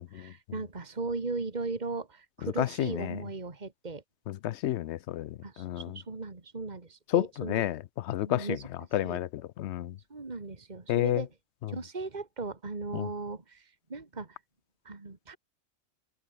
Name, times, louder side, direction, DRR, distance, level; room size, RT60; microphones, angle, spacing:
voice 1, 0.0-4.0 5.4-7.7 8.3-8.7 9.0-9.2 10.1-11.3 11.7-14.4 14.8-15.4, right 3 dB, 35° right, 2.3 m, -37 dB
voice 2, 2.6-3.2 4.3-6.0 7.1-8.6 8.9-10.0 10.9-11.2 12.9-13.1, left 13 dB, 65° left, 0.8 m, -30 dB
omnidirectional pair, 1.4 m